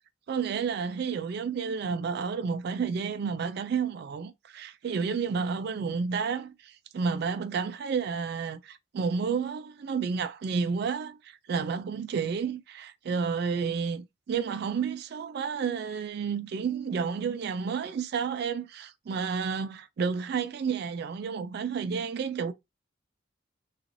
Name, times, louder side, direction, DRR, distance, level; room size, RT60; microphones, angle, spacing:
voice 1, 0.3-22.5, right 5 dB, 55° right, 0.3 m, -31 dB
3.0 x 2.4 x 2.5 m
head